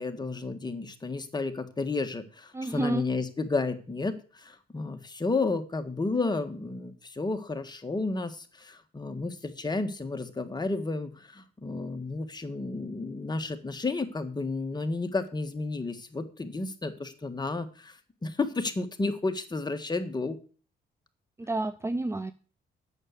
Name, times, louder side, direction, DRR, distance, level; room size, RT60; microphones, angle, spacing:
voice 1, 0.0-20.4, left 3 dB, 20° left, 7 dB, 1.6 m, -32 dB
voice 2, 2.5-3.1 21.4-22.3, right 2 dB, 15° right, 13 dB, 0.5 m, -30 dB
8.9 x 6.4 x 8.1 m, 0.40 s
cardioid pair, 90°, 20 cm